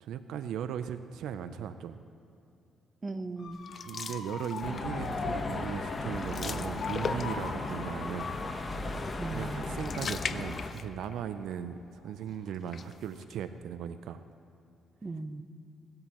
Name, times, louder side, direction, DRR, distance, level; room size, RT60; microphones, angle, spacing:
voice 1, 0.0-2.0 3.8-8.3 9.2-14.2, right 8 dB, 80° right, 11 dB, 0.5 m, -38 dB
voice 2, 3.0-3.7 9.2-9.7 15.0-15.4, right 3 dB, 30° right, 9 dB, 0.7 m, -38 dB
Motor vehicle (road) / Siren, 3.4-12.3 12.7-13.2, left 4 dB, 65° left, 1.4 m, -42 dB
sound 1, 3.6-5.0 5.4-5.6 5.9-7.6 9.4-11.2 11.5-11.6 12.5-13.3, left 6 dB, 45° left, 0.5 m, -40 dB
sound 2, 4.6-10.7, left 3 dB, 30° left, 1.0 m, -36 dB
18.0 x 12.5 x 3.0 m, 2.6 s
cardioid pair, 90°, 0 cm